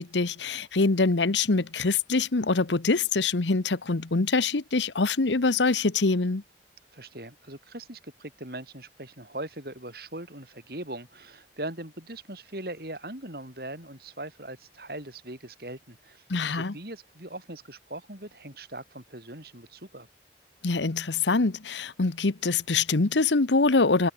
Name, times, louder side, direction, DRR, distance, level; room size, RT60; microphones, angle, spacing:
voice 1, 0.0-6.4 16.3-16.7 20.6-24.1, left 3 dB, 85° left, 1.0 m, -24 dB
voice 2, 6.9-20.1, right 1 dB, 55° right, 6.2 m, -40 dB
head